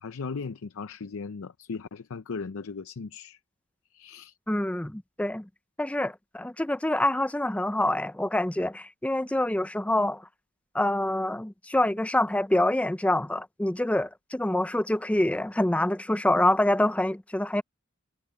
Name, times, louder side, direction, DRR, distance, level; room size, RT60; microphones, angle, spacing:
voice 1, 0.0-3.4 3.9-4.4, left 5 dB, 75° left, 0.6 m, -37 dB
voice 2, 4.5-5.5 5.8-10.3 10.7-17.6, left 1 dB, 5° left, 0.4 m, -26 dB
head